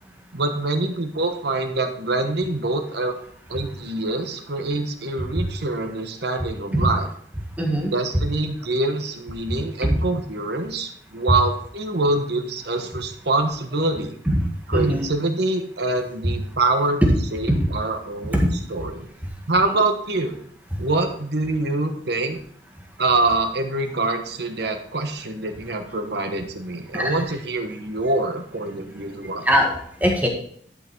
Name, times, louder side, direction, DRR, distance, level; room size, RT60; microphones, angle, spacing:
voice 1, 0.3-3.2 3.5-7.1 7.9-14.2 14.7-17.0 17.3-19.0 19.5-20.3 20.8-22.4 23.0-29.5, right 2 dB, 65° right, 6 dB, 1.3 m, -25 dB
voice 2, 7.6-7.9 9.8-10.0 14.3-14.4 14.7-15.1 17.5-17.7 18.3-18.5 26.9-27.2 29.4-30.3, equal, 10° right, 0 dB, 1.6 m, -21 dB
11.5 x 5.8 x 4.7 m, 0.63 s
head